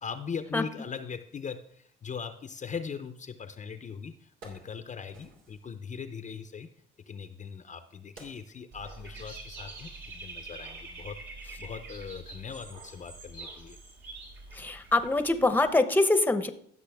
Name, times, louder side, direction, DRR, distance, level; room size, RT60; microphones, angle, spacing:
voice 1, 0.0-6.7 7.1-11.2 11.6-13.8, left 6 dB, 40° left, 9 dB, 0.6 m, -40 dB
Wood, 4.3-5.7 6.7-10.0 10.4-10.5, right 2 dB, 90° right, 2.7 m, -55 dB
Dog / Bird, 8.7-15.7, right 3 dB, 65° right, 2.8 m, -45 dB
voice 2, 14.5-16.5, left 2 dB, 10° left, 10 dB, 0.8 m, -24 dB
15.5 x 6.2 x 3.5 m, 0.65 s
cardioid pair, 90°, 20 cm